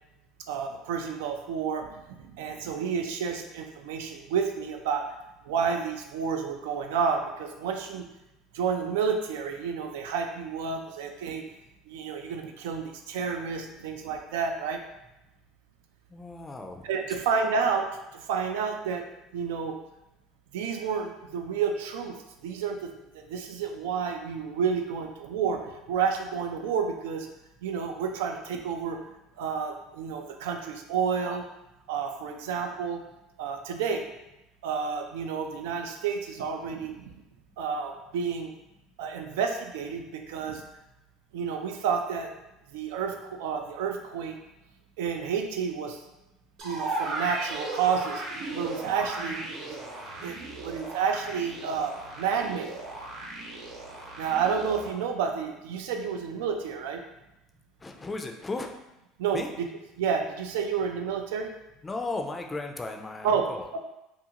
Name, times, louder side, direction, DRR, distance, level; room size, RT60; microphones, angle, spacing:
voice 1, 0.5-1.9 2.2-5.0 5.5-8.1 8.5-11.4 11.9-14.8 16.8-17.9 18.1-19.0 19.3-19.8 20.5-22.1 22.4-25.6 25.9-27.3 27.6-29.0 29.4-31.4 31.9-33.0 33.4-34.0 34.6-37.1 37.6-38.5 39.0-40.6 41.3-42.3 42.7-44.4 45.0-46.0 46.6-49.4 50.2-50.4 50.6-52.7 54.2-57.0 59.2-59.7 60.0-61.5 63.2-63.5 63.7-63.8, right 6 dB, 85° right, 5 dB, 0.3 m, -30 dB
voice 2, 16.1-16.9 57.8-58.7 59.3-59.5 61.8-63.6, left 3 dB, 20° left, 3 dB, 0.4 m, -35 dB
sound 1, 46.6-54.9, right 2 dB, 55° right, 0.8 m, -36 dB
2.4 x 2.4 x 2.8 m, 0.92 s
supercardioid pair, 100°, 0 cm